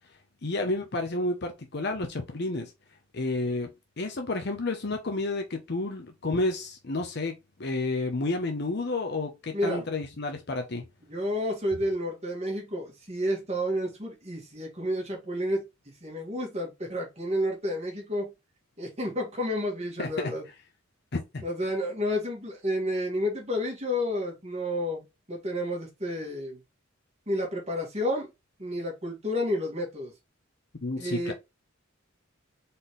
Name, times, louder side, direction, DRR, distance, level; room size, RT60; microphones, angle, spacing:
voice 1, 0.4-2.7 3.1-3.7 4.0-7.3 7.6-10.8 20.0-20.3 21.1-21.4 30.8-31.3, left 2 dB, 55° left, 0.8 m, -30 dB
voice 2, 9.5-9.9 11.1-15.7 16.0-18.3 18.8-20.4 21.4-26.6 27.3-28.3 28.6-30.1 31.0-31.3, equal, 30° right, 1.9 m, -30 dB
4.1 x 3.8 x 3.2 m
head